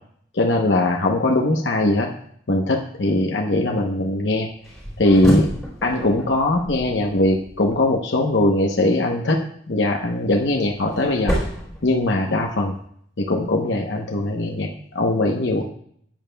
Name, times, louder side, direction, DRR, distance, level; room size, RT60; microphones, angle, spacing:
voice 1, 0.3-2.1 2.5-4.5 5.0-5.5 5.8-11.3 11.8-12.7 13.2-15.6, left 2 dB, 75° left, 1 dB, 0.8 m, -20 dB
sound 1, 4.6-7.8 10.0-12.6, equal, ahead, 3.9 m, -28 dB
14.0 x 8.9 x 2.2 m, 0.66 s
head